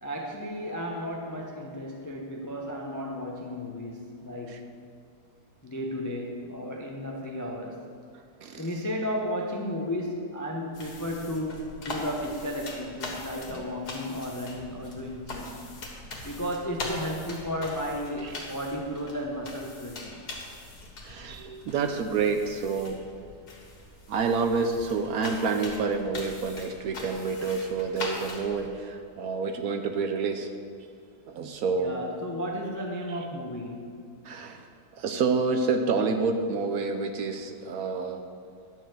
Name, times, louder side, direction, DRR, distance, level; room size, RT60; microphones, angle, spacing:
voice 1, 0.0-4.8 5.6-7.9 8.6-15.6 16.2-20.2 31.8-34.0, equal, 25° left, 0 dB, 0.4 m, -34 dB
sound 1, 10.7-28.7, left 2 dB, 65° left, 2.0 m, -41 dB
voice 2, 21.0-23.0 24.1-30.5 31.3-32.0 34.2-34.7 34.9-38.2, right 4 dB, 65° right, 6 dB, 1.0 m, -28 dB
11.0 x 4.7 x 7.5 m, 2.4 s
omnidirectional pair, 1.8 m